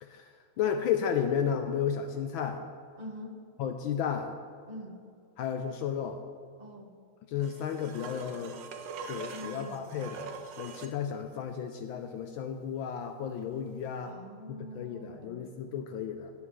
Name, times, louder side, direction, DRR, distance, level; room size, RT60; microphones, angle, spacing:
voice 1, 0.0-2.6 3.6-4.3 5.4-6.2 7.3-8.6 9.1-14.1 14.5-16.3, left 8 dB, 75° left, 6 dB, 1.3 m, -33 dB
voice 2, 3.0-3.3 4.7-5.0 6.6-6.9 9.3-9.8 14.0-15.4, equal, 30° right, -1 dB, 1.2 m, -44 dB
sound 1, 7.4-11.0 13.9-14.0, right 5 dB, 65° right, 1.2 m, -43 dB
17.5 x 7.4 x 3.1 m, 2.2 s
omnidirectional pair, 2.4 m